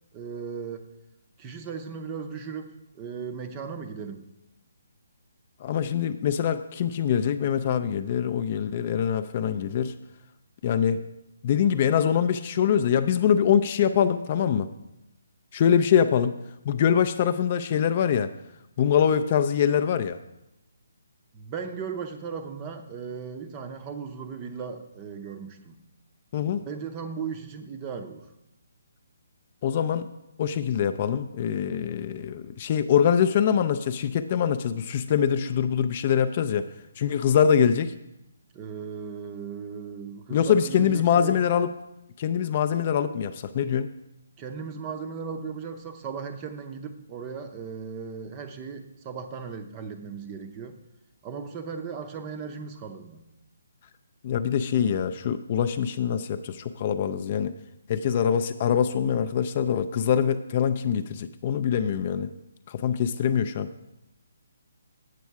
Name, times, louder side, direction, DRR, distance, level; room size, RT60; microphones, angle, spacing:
voice 1, 0.1-0.9 1.4-4.2 21.3-25.8 26.7-28.3 38.5-41.4 44.4-50.8 51.2-53.3, right 6 dB, 20° right, 8 dB, 0.6 m, -37 dB
voice 2, 5.6-9.9 10.6-11.0 11.4-14.7 15.5-16.4 16.7-18.3 18.8-20.2 26.3-26.6 29.6-30.1 30.4-36.7 37.0-37.9 40.3-41.7 42.2-43.9 54.2-57.5 57.9-62.3 62.7-63.7, left 8 dB, 35° left, 10 dB, 0.3 m, -24 dB
8.3 x 6.2 x 4.6 m, 0.89 s
hypercardioid pair, 165°, 0 cm